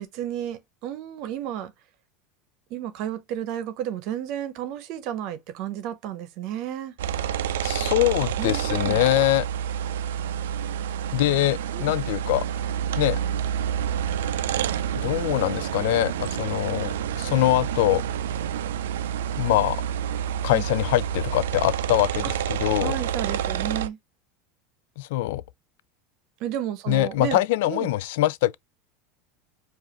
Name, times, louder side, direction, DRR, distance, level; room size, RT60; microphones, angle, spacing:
voice 1, 0.0-1.7 2.7-6.9 8.4-9.0 11.7-12.0 16.4-16.6 20.5-20.6 22.2-22.3 22.8-24.0 26.4-27.4 27.7-27.9, right 11 dB, 60° right, 0.8 m, -32 dB
sound 1, 7.0-23.9, right 9 dB, 90° right, 0.4 m, -28 dB
voice 2, 7.6-9.5 11.1-12.5 13.0-13.2 14.9-18.0 19.4-19.8 20.4-22.9 25.0-25.4 26.9-28.6, left 15 dB, 75° left, 0.3 m, -23 dB
4.8 x 2.5 x 3.0 m
supercardioid pair, 120°, 0 cm